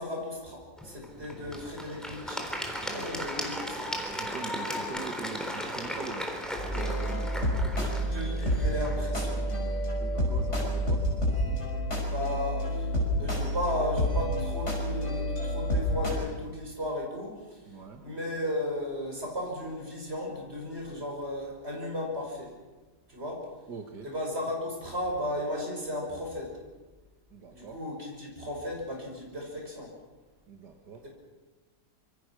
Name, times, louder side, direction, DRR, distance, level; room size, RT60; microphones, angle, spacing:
voice 1, 0.0-2.5 2.9-3.7 7.8-9.5 12.1-22.5 23.1-23.5 24.0-26.5 27.5-29.9 31.0-31.1, left 1 dB, 35° right, 0 dB, 6.7 m, -35 dB
Applause / Crowd, 0.8-9.9, equal, ahead, 3.7 m, -37 dB
voice 2, 2.8-3.3 4.1-8.0 10.0-11.1 17.7-18.0 23.7-24.1 27.3-27.8 30.5-31.0, right 5 dB, 80° right, 3 dB, 2.2 m, -43 dB
sound 1, 6.6-16.1, equal, 40° left, 6.0 m, -29 dB
26.0 x 24.0 x 6.3 m, 1.3 s
omnidirectional pair, 1.8 m